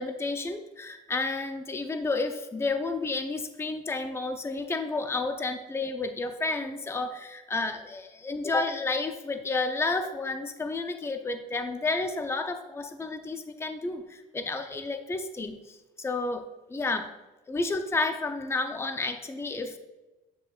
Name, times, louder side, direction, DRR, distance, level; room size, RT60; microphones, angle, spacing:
voice 1, 0.0-17.1 17.5-19.8, left 3 dB, 15° left, 7 dB, 0.6 m, -31 dB
9.6 x 7.2 x 2.4 m, 1.0 s
cardioid pair, 110°, 17 cm